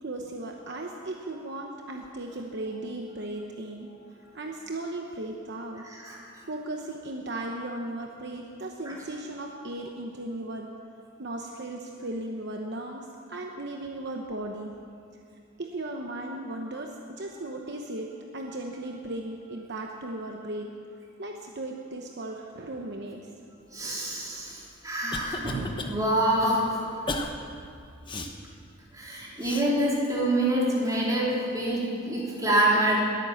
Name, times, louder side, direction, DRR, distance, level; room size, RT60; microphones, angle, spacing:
voice 1, 0.0-3.9 4.3-5.8 6.5-10.7 11.2-14.7 15.6-20.7 21.2-23.3, right 1 dB, 55° right, 2 dB, 1.0 m, -36 dB
voice 2, 5.9-6.2 23.7-26.8 28.9-33.0, right 1 dB, 15° right, -5 dB, 3.7 m, -26 dB
Cough, 24.5-25.9 26.3-26.5 27.1-27.3 28.1-28.3 29.4-29.7, left 2 dB, 25° left, 1.0 m, -34 dB
21.0 x 9.2 x 7.2 m, 2.4 s
head